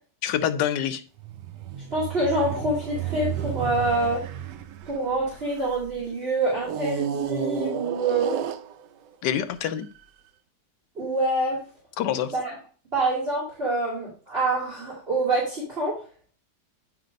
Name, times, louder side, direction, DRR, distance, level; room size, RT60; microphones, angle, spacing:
voice 1, 0.2-1.0 9.2-9.9 12.0-12.3, left 10 dB, 85° left, 1.3 m, -26 dB
sound 1, 1.2-5.9 6.6-9.2 9.8-10.0, right 9 dB, 90° right, 1.3 m, -32 dB
voice 2, 1.9-4.2 4.9-8.4 11.0-11.6 12.3-12.6 12.9-16.0, right 2 dB, 35° right, 2.9 m, -26 dB
9.4 x 3.4 x 5.2 m
omnidirectional pair, 1.8 m